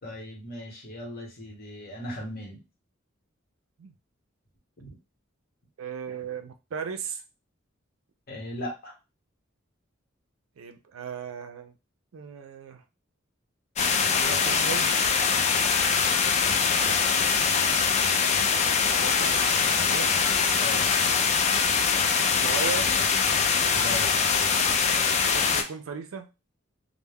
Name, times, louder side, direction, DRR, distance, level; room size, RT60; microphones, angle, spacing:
voice 1, 0.0-2.6 4.8-4.9 8.3-8.9 16.8-17.2 20.6-20.9 23.7-24.2, left 1 dB, 50° left, -1 dB, 1.0 m, -38 dB
voice 2, 5.8-7.2 10.6-11.7 12.1-12.8 14.1-14.9 18.9-20.2 22.4-23.0 25.3-26.3, right 6 dB, 85° right, 7 dB, 0.4 m, -36 dB
sound 1, 13.8-25.6, left 6 dB, 35° left, 0.3 m, -23 dB
2.2 x 2.0 x 3.3 m, 0.26 s
head